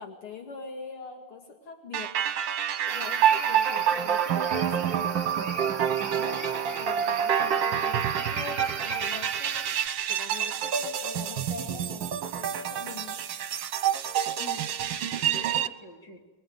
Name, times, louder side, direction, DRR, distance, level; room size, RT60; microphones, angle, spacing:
voice 1, 0.0-2.1 2.4-9.7 10.1-13.2, left 5 dB, 80° left, 2 dB, 2.9 m, -43 dB
sound 1, 1.9-15.7, right 9 dB, 65° right, 1.7 m, -27 dB
sound 2, 2.9-9.9, right 3 dB, 45° right, 2.2 m, -39 dB
voice 2, 14.4-16.2, left 3 dB, 55° left, 1 dB, 4.1 m, -45 dB
25.5 x 22.5 x 9.5 m, 1.2 s
omnidirectional pair, 2.3 m